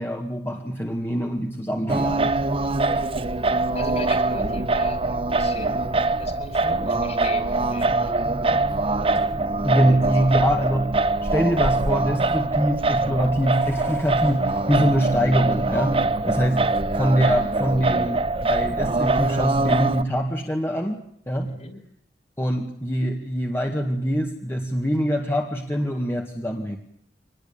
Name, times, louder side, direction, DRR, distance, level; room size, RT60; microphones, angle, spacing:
voice 1, 0.0-2.3 2.9-3.1 9.6-10.9 11.2-16.6 16.9-21.5 22.4-26.8, equal, 15° left, 2 dB, 1.9 m, -24 dB
Singing, 1.9-20.0, right 2 dB, 30° right, 1.0 m, -23 dB
voice 2, 3.7-5.9 6.2-8.1 10.2-10.4 21.4-21.8, left 2 dB, 40° left, 8 dB, 4.8 m, -36 dB
25.5 x 20.0 x 8.7 m, 0.70 s
head